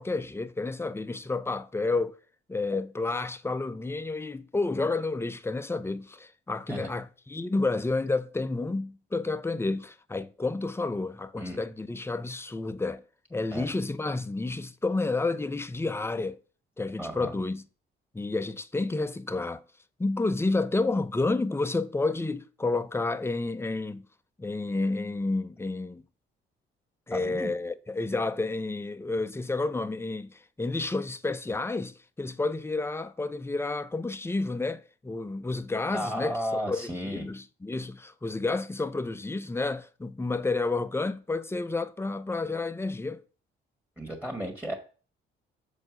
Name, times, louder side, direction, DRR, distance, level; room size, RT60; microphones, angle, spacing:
voice 1, 0.0-2.2 2.5-13.0 13.3-16.4 16.8-17.6 18.1-19.6 20.0-24.1 24.4-26.0 27.1-36.4 36.7-43.2, left 3 dB, 10° left, 0.7 m, -30 dB
voice 2, 17.0-17.4 27.1-27.5 35.9-37.3 44.0-44.7, equal, 5° right, 1.9 m, -34 dB
7.2 x 4.5 x 6.3 m
cardioid pair, 90°, 20 cm